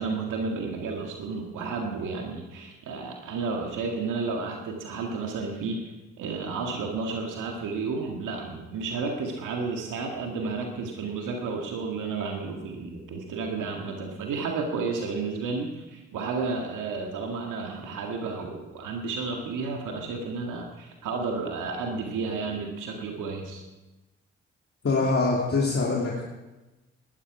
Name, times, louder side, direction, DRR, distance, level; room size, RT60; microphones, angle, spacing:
voice 1, 0.0-23.6, right 4 dB, 75° right, 1 dB, 1.9 m, -32 dB
voice 2, 24.8-26.2, left 3 dB, 45° left, -4 dB, 3.0 m, -24 dB
18.5 x 12.0 x 4.9 m, 1.1 s
hypercardioid pair, 45°, 32 cm